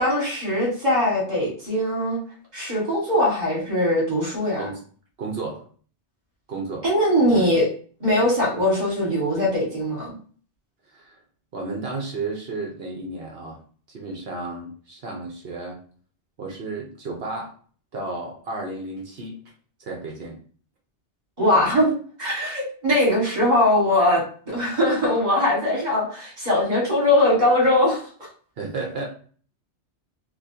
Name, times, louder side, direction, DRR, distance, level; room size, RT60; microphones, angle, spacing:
voice 1, 0.0-2.2 2.5-4.6 6.8-7.6 8.0-10.1 21.4-28.0, left 1 dB, 40° right, -4 dB, 1.8 m, -21 dB
voice 2, 5.2-5.7 6.5-6.9 7.3-7.5 10.9-11.2 11.5-13.6 13.9-15.8 16.4-17.5 17.9-19.4 19.8-20.4 21.5-21.8 28.6-29.1, right 3 dB, 60° right, 0 dB, 1.0 m, -33 dB
3.8 x 2.8 x 2.7 m, 0.44 s
omnidirectional pair, 1.2 m